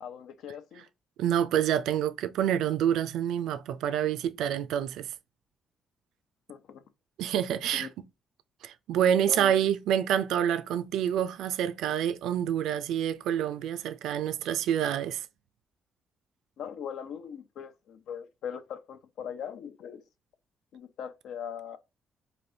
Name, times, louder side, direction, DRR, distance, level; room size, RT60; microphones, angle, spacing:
voice 1, 0.0-0.9 6.5-6.8 7.7-7.9 9.3-9.5 16.6-20.1 20.7-21.8, left 8 dB, 80° left, 0.4 m, -40 dB
voice 2, 1.2-5.1 7.2-7.9 8.6-15.3, right 10 dB, 85° right, 0.3 m, -27 dB
3.3 x 2.5 x 2.6 m
cardioid pair, 90°, 0 cm